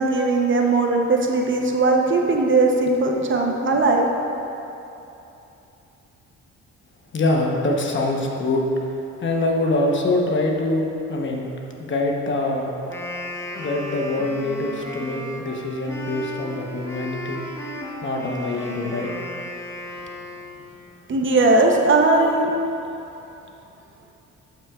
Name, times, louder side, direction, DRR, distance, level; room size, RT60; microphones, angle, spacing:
voice 1, 0.0-4.1 21.1-22.5, right 3 dB, 40° right, 1 dB, 0.8 m, -19 dB
voice 2, 7.1-8.7 9.2-11.5 11.8-12.8 13.6-17.5 18.0-19.1, left 2 dB, 40° left, 0 dB, 1.0 m, -24 dB
Wind instrument woodwind instrument, 12.8-20.8, left 1 dB, 10° left, 0.9 m, -35 dB
11.5 x 6.0 x 2.4 m, 2.9 s
cardioid pair, 90°, 30 cm